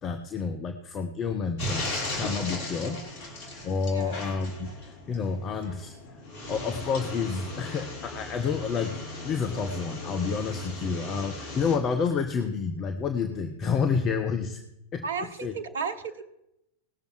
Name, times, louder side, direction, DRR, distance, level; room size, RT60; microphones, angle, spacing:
voice 1, 0.0-3.0 3.6-6.0 6.5-14.6 14.9-15.6, left 5 dB, 30° left, 6 dB, 1.0 m, -29 dB
sound 1, 1.6-11.8, left 2 dB, 45° left, 3.3 m, -37 dB
voice 2, 3.9-4.3 4.6-4.7 15.0-16.2, right 5 dB, 65° right, 9 dB, 1.2 m, -35 dB
19.0 x 6.9 x 4.7 m, 0.84 s
figure-of-eight pair, 90°, 0 cm